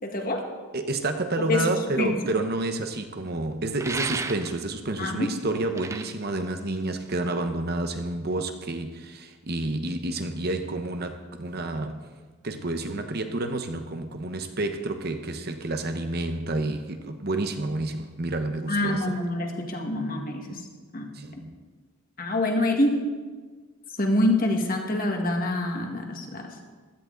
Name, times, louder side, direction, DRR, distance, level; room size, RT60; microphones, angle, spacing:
voice 1, 0.0-0.5 1.5-2.2 5.0-5.3 18.7-20.6 20.9-21.1 22.2-23.1 24.0-26.5, left 1 dB, 40° left, 3 dB, 1.6 m, -26 dB
voice 2, 0.7-12.1 12.4-19.0 21.1-21.5, right 2 dB, 45° right, 7 dB, 0.9 m, -29 dB
sound 1, 3.8-4.8 5.6-7.3, right 3 dB, 15° right, 0.4 m, -34 dB
16.0 x 12.5 x 3.9 m, 1.4 s
head